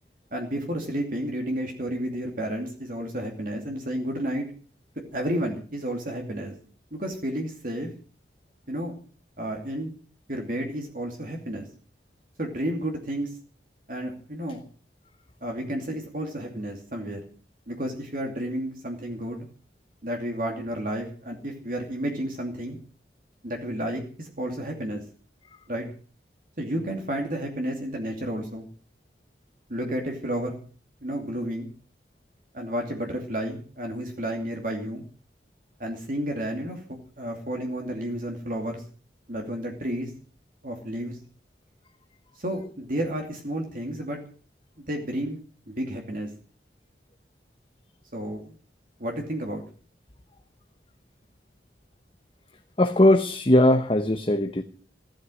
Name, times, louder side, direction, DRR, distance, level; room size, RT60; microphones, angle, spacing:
voice 1, 0.3-4.5 5.1-6.5 6.9-7.9 8.7-9.0 9.4-9.9 10.3-11.7 12.4-13.4 13.9-14.6 15.4-17.2 17.7-19.5 20.0-22.8 23.4-25.0 25.7-25.9 26.6-28.7 29.7-30.6 31.0-31.7 32.5-35.0 35.8-36.8 37.2-38.8 39.3-40.1 40.6-41.2 42.4-44.2 44.8-45.4 45.7-46.3 48.1-48.5 49.0-49.6, right 1 dB, 50° right, 2 dB, 2.7 m, -31 dB
voice 2, 52.8-54.6, left 1 dB, 30° left, 5 dB, 1.0 m, -19 dB
16.0 x 13.0 x 6.4 m, 0.41 s
head